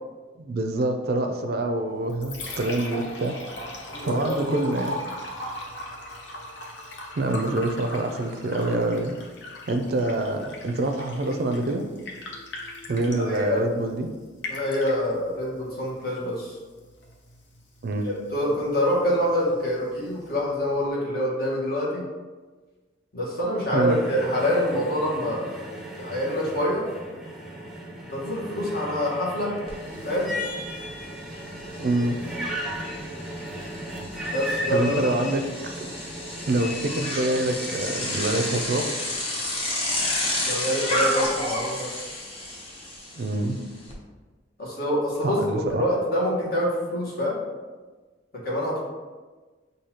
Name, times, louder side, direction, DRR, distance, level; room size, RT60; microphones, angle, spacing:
voice 1, 0.4-3.7 4.0-4.9 7.2-9.1 9.7-11.8 12.9-14.1 17.8-18.1 23.7-24.0 31.8-32.2 34.7-35.4 35.8-35.9 36.5-38.9 43.2-43.6 45.2-45.8, right 2 dB, 55° right, 5 dB, 0.4 m, -26 dB
Liquid, 1.9-20.9, left 1 dB, 70° left, 0.8 m, -40 dB
voice 2, 3.9-4.7 13.0-13.6 14.5-16.6 18.0-22.0 23.1-25.4 26.0-26.8 28.1-29.5 30.0-30.3 34.3-35.1 40.5-41.9 44.6-47.4 48.4-48.8, equal, 55° left, -5 dB, 1.4 m, -26 dB
sound 1, 23.9-38.8, equal, ahead, 0.6 m, -36 dB
Bicycle, 29.7-29.8 30.1-43.9, left 1 dB, 30° left, 0.7 m, -31 dB
6.3 x 2.7 x 2.9 m, 1.3 s
head